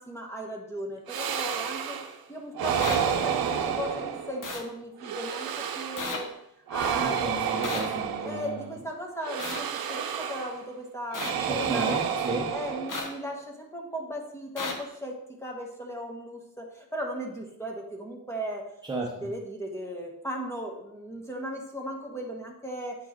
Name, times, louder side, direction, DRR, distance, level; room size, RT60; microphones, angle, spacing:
voice 1, 0.0-2.0 2.3-6.3 6.7-7.4 8.2-12.0 12.5-15.2 15.4-18.6 19.2-23.0, equal, 5° left, 0 dB, 1.2 m, -37 dB
sound 1, 1.1-2.2 2.5-4.5 5.0-6.2 6.7-8.7 9.2-10.6 11.1-13.2, right 7 dB, 65° right, 0.8 m, -30 dB
sound 2, 2.8-3.0 4.4-4.6 6.0-6.2 7.6-7.9 9.4-9.6 11.1-11.3 12.9-13.1 14.6-14.7, left 3 dB, 55° left, 1.2 m, -33 dB
voice 2, 7.0-8.8 11.5-12.5 18.8-19.3, right 2 dB, 10° right, -4 dB, 0.9 m, -34 dB
8.7 x 4.5 x 3.1 m, 0.80 s
cardioid pair, 110°, 38 cm